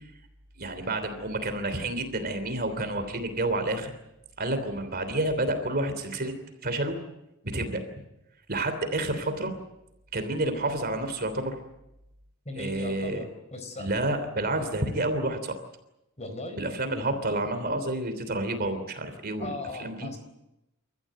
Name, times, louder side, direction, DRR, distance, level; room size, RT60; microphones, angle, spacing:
voice 1, 0.6-3.9 4.4-6.4 6.6-7.0 7.4-7.8 8.5-9.6 10.1-11.6 12.6-13.2 13.8-15.5 16.5-19.5 19.8-20.1, right 2 dB, 45° right, 9 dB, 3.2 m, -29 dB
voice 2, 12.4-13.9 16.2-16.6 19.4-20.2, left 2 dB, 30° left, 7 dB, 4.4 m, -38 dB
29.5 x 14.5 x 9.4 m, 0.91 s
head